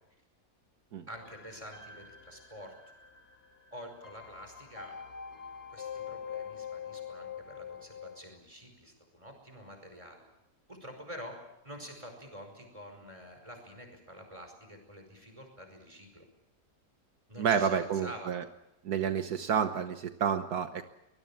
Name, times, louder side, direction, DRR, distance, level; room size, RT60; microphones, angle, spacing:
sound 1, 1.1-8.2, left 7 dB, 75° left, 2.1 m, -44 dB
voice 1, 1.1-2.7 3.7-5.0 5.7-10.2 10.7-11.4 11.6-16.3 17.3-18.3, equal, 20° right, 4 dB, 5.3 m, -47 dB
voice 2, 17.4-18.4 18.8-20.9, right 7 dB, 75° right, 8 dB, 1.5 m, -29 dB
23.5 x 20.0 x 7.2 m, 0.87 s
omnidirectional pair, 1.7 m